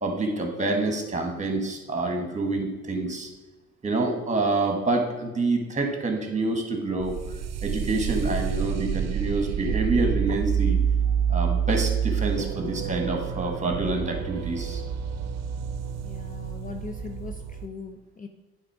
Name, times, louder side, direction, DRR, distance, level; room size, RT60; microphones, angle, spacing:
voice 1, 0.0-3.3 3.8-7.2 7.6-10.8 11.3-14.8, right 2 dB, 20° right, 4 dB, 1.7 m, -27 dB
sound 1, 7.0-17.7, right 8 dB, 50° right, 0.7 m, -28 dB
voice 2, 16.0-18.3, left 5 dB, 25° left, 5 dB, 0.6 m, -40 dB
8.9 x 3.9 x 4.9 m, 1.2 s
supercardioid pair, 70°, 32 cm